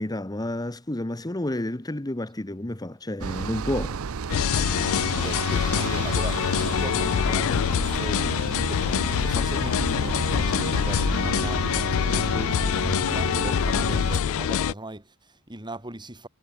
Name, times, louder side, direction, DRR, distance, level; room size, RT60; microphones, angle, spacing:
voice 1, 0.0-4.0, left 1 dB, 20° left, 1.1 m, -30 dB
sound 1, 3.2-14.2, right 5 dB, 70° right, 0.6 m, -32 dB
sound 2, 4.3-14.7, left 8 dB, 70° left, 0.4 m, -25 dB
voice 2, 4.7-16.3, right 1 dB, 20° right, 4.9 m, -39 dB
head